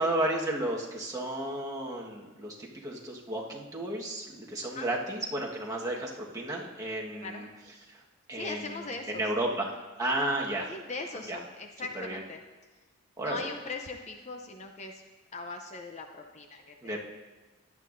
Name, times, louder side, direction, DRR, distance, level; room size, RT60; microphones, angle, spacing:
voice 1, 0.0-7.5 7.9-8.0 8.3-9.7 10.0-10.7 11.3-11.4 11.9-12.2 13.2-13.4 16.8-17.0, right 1 dB, 15° right, -2 dB, 1.4 m, -33 dB
voice 2, 8.3-9.2 10.7-12.4 13.2-15.0 15.3-17.0, left 3 dB, 30° left, 4 dB, 0.6 m, -40 dB
16.5 x 11.0 x 2.6 m, 1.2 s
head